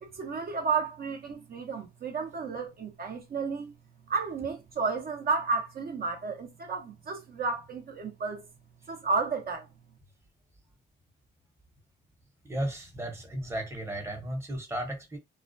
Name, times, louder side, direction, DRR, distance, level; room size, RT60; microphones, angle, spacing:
voice 1, 0.0-3.7 4.1-8.5 8.9-9.7, right 4 dB, 50° right, 0.7 m, -32 dB
voice 2, 12.4-15.2, right 1 dB, 15° right, 0.9 m, -34 dB
2.4 x 2.1 x 2.5 m
cardioid pair, 90°, 20 cm